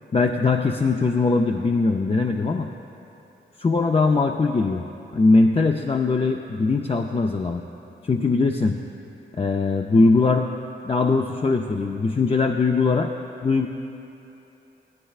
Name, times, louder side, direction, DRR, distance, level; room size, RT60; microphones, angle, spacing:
voice 1, 0.1-2.7 3.6-4.8 5.1-7.6 8.0-8.7 9.4-10.5 10.8-13.1 13.4-13.7, left 3 dB, 30° left, 2 dB, 0.4 m, -21 dB
15.5 x 13.0 x 2.4 m, 2.9 s
wide cardioid pair, 70°, 20 cm